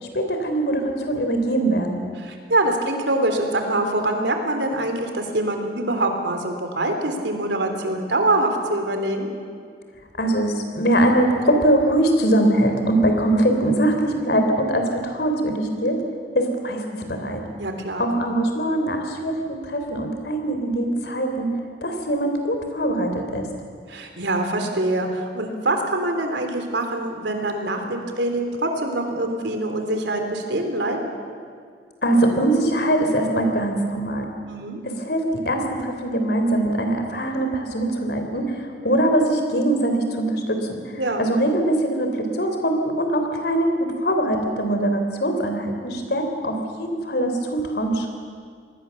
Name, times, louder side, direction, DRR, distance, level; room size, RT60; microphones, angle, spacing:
voice 1, 0.0-2.0 10.2-16.0 16.3-17.4 18.0-21.5 21.8-23.5 32.0-34.3 34.8-48.1, right 1 dB, 65° left, 5 dB, 3.5 m, -22 dB
voice 2, 2.2-9.3 17.6-18.1 23.9-31.0 34.5-34.8 41.0-41.3, right 1 dB, 90° right, 5 dB, 3.3 m, -24 dB
25.5 x 19.0 x 7.2 m, 2.1 s
head